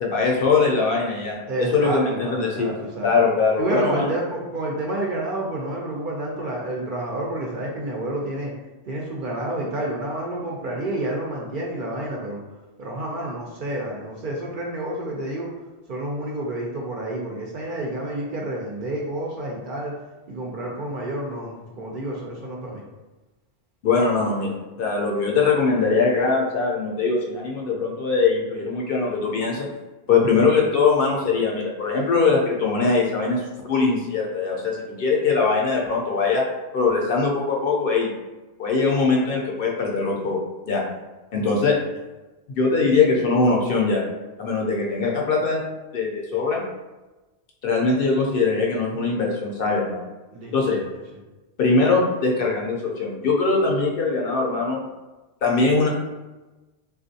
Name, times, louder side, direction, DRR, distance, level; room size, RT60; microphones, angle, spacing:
voice 1, 0.0-1.4 1.7-2.7 3.0-4.2 23.8-29.7 30.1-36.4 36.7-38.1 38.6-40.4 40.7-40.8 41.3-41.8 42.5-44.0 44.4-45.6 45.9-46.6 47.6-50.0 50.5-50.8 51.6-54.8 55.4-55.9, left 4 dB, 65° left, -2 dB, 0.7 m, -21 dB
voice 2, 1.5-3.1 3.6-8.5 8.9-12.4 12.8-15.5 15.9-19.9 20.3-22.8 41.4-41.8 50.3-50.8, right 1 dB, 60° right, -2 dB, 0.6 m, -29 dB
3.5 x 2.4 x 2.6 m, 1.1 s
omnidirectional pair, 1.1 m